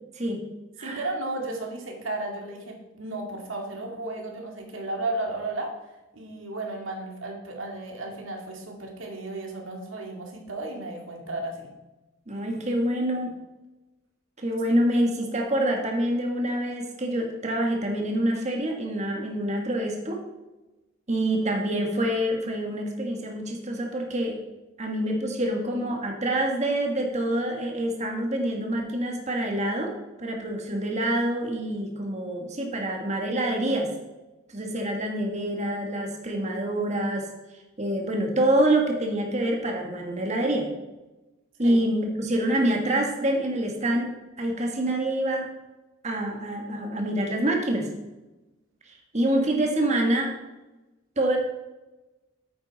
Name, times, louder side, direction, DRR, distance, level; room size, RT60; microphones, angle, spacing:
voice 1, 0.8-5.7 6.1-11.7 41.6-41.8, right 2 dB, 75° right, 1 dB, 2.2 m, -34 dB
voice 2, 12.3-13.4 14.4-20.2 21.1-24.4 24.8-29.9 30.2-33.9 34.5-37.3 37.8-40.7 41.6-44.1 44.4-45.5 46.0-47.9 48.9-50.3 51.2-51.4, right 1 dB, 35° right, 2 dB, 1.7 m, -26 dB
9.3 x 8.6 x 4.1 m, 1.1 s
head